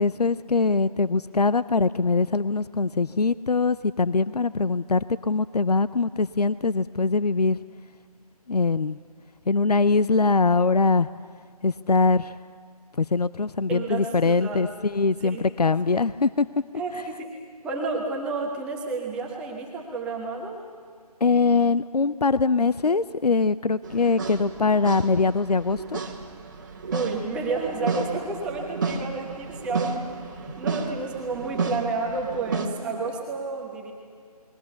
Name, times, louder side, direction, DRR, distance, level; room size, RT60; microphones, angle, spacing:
voice 1, 0.0-7.6 8.5-9.0 9.5-11.1 11.6-12.4 13.0-16.5 21.2-26.0, left 4 dB, 75° left, 16 dB, 0.6 m, -22 dB
voice 2, 13.7-14.6 15.2-15.4 16.8-17.4 17.6-20.6 26.9-33.9, right 3 dB, 5° right, 0 dB, 1.2 m, -31 dB
sound 1, 23.8-32.7, right 4 dB, 30° right, 1.6 m, -32 dB
28.5 x 21.5 x 7.0 m, 2.2 s
figure-of-eight pair, 155°, 20 cm